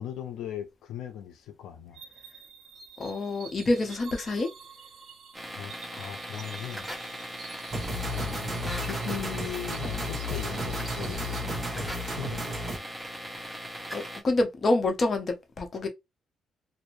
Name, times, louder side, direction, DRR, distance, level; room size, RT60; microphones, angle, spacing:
voice 1, 0.0-2.0 5.6-6.9 8.1-12.6, left 10 dB, 85° left, 0.4 m, -39 dB
sound 1, 1.9-11.5, right 5 dB, 55° right, 1.3 m, -48 dB
voice 2, 3.0-4.5 13.4-13.5 13.9-15.9, left 2 dB, 40° left, 0.7 m, -27 dB
sound 2, 5.3-14.2, equal, 5° left, 0.8 m, -39 dB
sound 3, 7.7-12.8, equal, 30° right, 0.9 m, -33 dB
2.5 x 2.0 x 3.0 m
cardioid pair, 90°, 0 cm